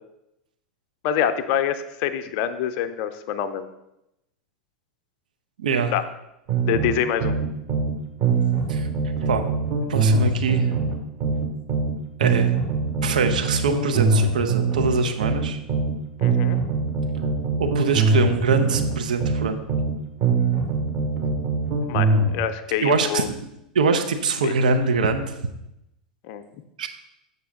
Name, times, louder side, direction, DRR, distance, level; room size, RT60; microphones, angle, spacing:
voice 1, 1.0-3.7 5.9-6.0 6.6-7.4 16.2-16.6 21.9-23.3 24.4-24.5 26.2-26.4, left 9 dB, 50° left, 10 dB, 0.6 m, -25 dB
voice 2, 5.6-5.9 8.7-8.9 9.3-9.4 9.9-10.7 12.2-12.5 13.0-15.6 17.6-19.6 22.8-23.5 23.7-25.3 26.8-26.9, right 4 dB, 70° right, 6 dB, 0.7 m, -23 dB
sound 1, 6.5-7.9 8.2-11.9 12.2-15.9 16.2-19.9 20.2-22.3, right 4 dB, 50° right, 1.8 m, -22 dB
6.9 x 6.7 x 3.6 m, 0.87 s
figure-of-eight pair, 85°, 4 cm